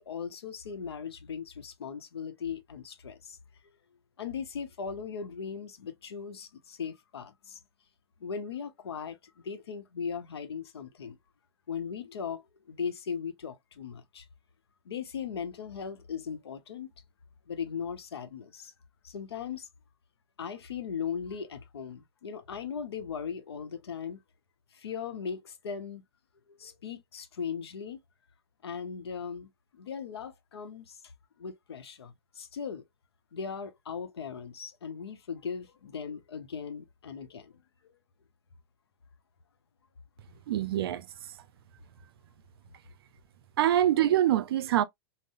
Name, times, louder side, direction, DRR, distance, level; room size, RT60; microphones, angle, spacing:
voice 1, 0.0-3.4 4.2-7.6 8.2-11.2 11.7-14.3 14.8-16.9 17.5-18.7 19.0-19.7 20.4-24.2 24.7-26.0 26.5-28.0 28.6-31.0 31.4-32.8 33.3-37.9, left 6 dB, 85° left, 0.7 m, -38 dB
voice 2, 40.5-41.1 43.6-44.8, right 12 dB, 70° right, 0.4 m, -24 dB
3.7 x 2.0 x 2.5 m
hypercardioid pair, 105°, 13 cm